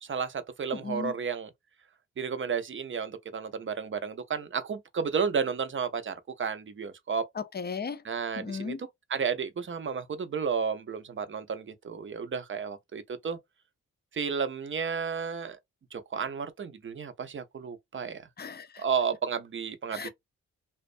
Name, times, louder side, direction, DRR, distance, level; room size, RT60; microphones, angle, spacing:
voice 1, 0.0-1.5 2.2-7.3 8.0-13.4 14.1-15.6 15.9-18.2 18.8-20.1, right 6 dB, 35° right, 0.6 m, -32 dB
voice 2, 0.7-1.1 7.4-8.0 8.4-8.8 18.4-18.8 19.9-20.1, left 5 dB, 30° left, 0.5 m, -36 dB
2.2 x 2.1 x 2.5 m
supercardioid pair, 40°, 34 cm